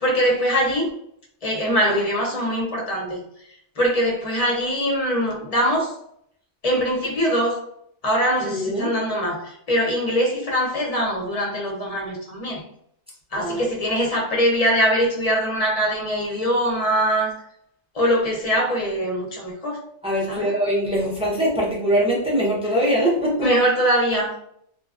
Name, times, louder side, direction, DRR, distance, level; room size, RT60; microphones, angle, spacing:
voice 1, 0.0-0.9 1.4-3.2 3.8-5.9 6.6-7.6 8.0-12.6 13.3-17.3 17.9-19.8 20.3-20.6 23.4-24.4, equal, 40° left, -2 dB, 0.6 m, -22 dB
voice 2, 8.4-8.9 13.4-13.7 20.0-23.5, equal, 5° right, -4 dB, 0.4 m, -22 dB
2.6 x 2.2 x 2.4 m, 0.68 s
omnidirectional pair, 1.2 m